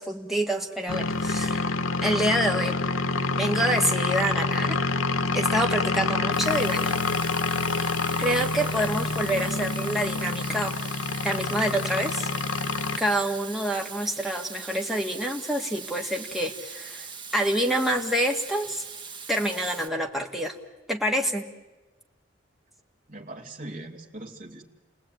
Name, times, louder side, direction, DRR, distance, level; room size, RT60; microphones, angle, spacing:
voice 1, 0.0-1.7 2.0-2.8 3.3-4.8 5.3-7.0 8.2-10.8 11.2-12.3 13.0-17.1 17.3-18.8 19.3-20.5 20.9-21.4, right 1 dB, ahead, 1 dB, 1.8 m, -27 dB
sound 1, 0.9-13.0, left 4 dB, 90° left, 1.0 m, -27 dB
Water tap faucet / Sink (filling or washing), 6.3-19.9, right 6 dB, 25° right, 1.4 m, -41 dB
voice 2, 23.1-24.6, right 1 dB, 40° right, 2 dB, 2.5 m, -40 dB
30.0 x 19.0 x 9.1 m, 1.2 s
head